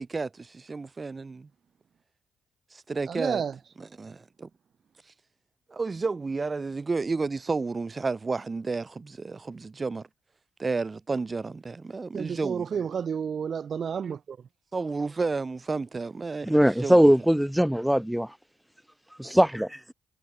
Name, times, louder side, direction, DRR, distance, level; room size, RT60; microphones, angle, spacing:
voice 1, 0.0-1.5 2.7-3.4 3.8-4.5 5.7-10.1 10.6-12.8 14.7-17.0, right 4 dB, 35° right, 2.5 m, -31 dB
voice 2, 3.1-3.5 12.1-14.4, right 7 dB, 55° right, 1.2 m, -31 dB
voice 3, 16.5-18.3 19.2-19.8, equal, 5° right, 0.9 m, -21 dB
supercardioid pair, 60°, 0 cm